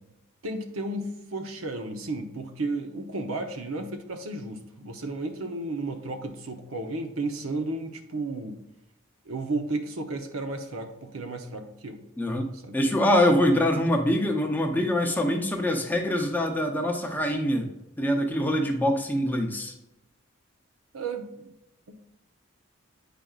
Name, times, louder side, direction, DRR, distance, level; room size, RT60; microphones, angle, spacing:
voice 1, 0.4-8.6 9.3-12.0 12.7-12.8 20.9-21.5 21.9-22.0, right 2 dB, 90° right, 6 dB, 0.8 m, -33 dB
voice 2, 12.2-17.7 18.0-19.7, left 1 dB, 10° left, 1 dB, 0.7 m, -24 dB
9.0 x 5.0 x 2.4 m, 0.87 s
head